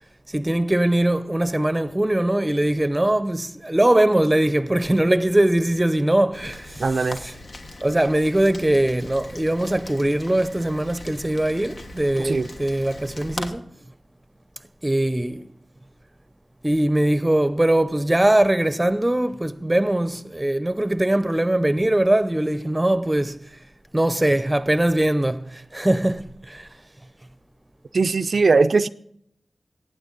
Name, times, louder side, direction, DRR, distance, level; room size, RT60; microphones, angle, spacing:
voice 1, 0.3-6.8 7.2-7.3 7.8-13.7 14.8-15.5 16.6-23.4 23.9-26.7, right 1 dB, 20° right, 0.7 m, -21 dB
Rain, 6.3-13.5, left 2 dB, 65° left, 1.2 m, -39 dB
voice 2, 6.8-7.2 12.2-12.5 27.9-28.9, right 4 dB, 75° right, 0.4 m, -19 dB
15.5 x 9.0 x 4.0 m
wide cardioid pair, 65°, 0 cm